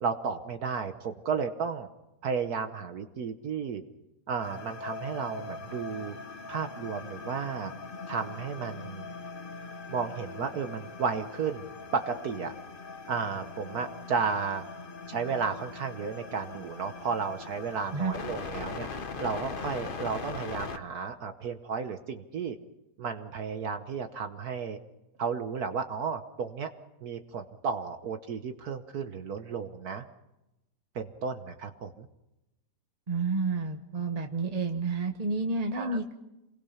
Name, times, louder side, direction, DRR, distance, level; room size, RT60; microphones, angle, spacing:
voice 1, 0.0-1.9 2.2-3.8 4.3-6.2 6.5-7.7 8.1-9.1 9.9-11.7 11.9-12.5 13.1-14.6 15.1-18.9 19.2-22.6 23.0-24.8 25.2-26.7 27.0-30.0 30.9-32.1 35.7-36.0, right 5 dB, 60° right, 7 dB, 1.4 m, -33 dB
sound 1, 4.4-20.8, left 4 dB, 35° left, 1.1 m, -41 dB
voice 2, 33.1-36.1, right 3 dB, 25° right, 4 dB, 0.9 m, -30 dB
28.5 x 21.5 x 5.7 m, 0.96 s
omnidirectional pair, 1.9 m